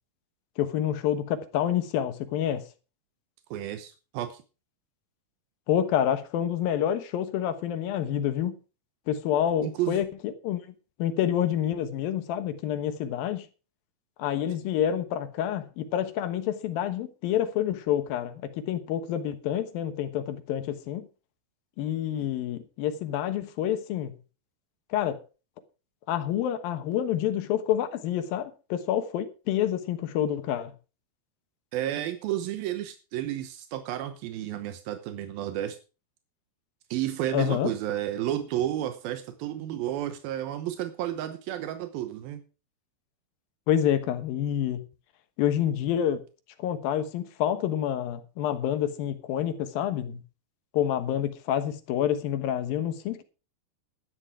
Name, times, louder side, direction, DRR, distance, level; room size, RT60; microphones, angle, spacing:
voice 1, 0.6-2.7 5.7-8.6 9.1-10.7 11.0-13.5 14.2-21.1 21.8-24.1 24.9-25.2 26.1-30.7 37.3-37.7 43.7-44.8 45.4-46.2 46.6-50.2 50.7-53.2, left 10 dB, 80° left, 3.0 m, -28 dB
voice 2, 3.5-4.4 9.6-10.0 31.7-35.8 36.9-42.4, right 12 dB, 85° right, 2.8 m, -31 dB
12.0 x 10.0 x 4.8 m
omnidirectional pair, 4.1 m